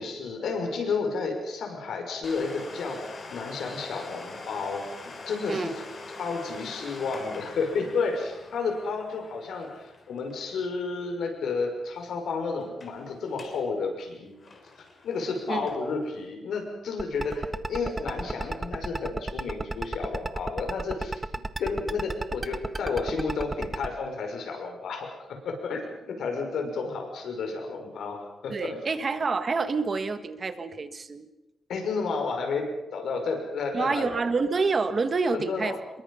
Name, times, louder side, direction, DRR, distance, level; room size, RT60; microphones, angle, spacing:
voice 1, 0.0-5.8 6.2-14.3 14.8-21.2 21.6-28.8 31.7-34.1 35.3-35.7, left 4 dB, 70° left, 3 dB, 6.0 m, -31 dB
Domestic sounds home sounds, 2.2-11.7 11.9-12.0 12.6-13.0 13.3-13.7 14.0-16.1 16.5-16.6 17.3-17.4, left 3 dB, 35° left, 3.4 m, -44 dB
voice 2, 5.5-5.8 15.5-15.8 28.5-31.3 33.7-35.8, right 4 dB, 30° right, 10 dB, 1.5 m, -28 dB
sound 1, 17.0-23.9, right 2 dB, 15° right, 0.9 m, -31 dB
27.0 x 22.5 x 5.7 m, 1.0 s
wide cardioid pair, 165°, 0 cm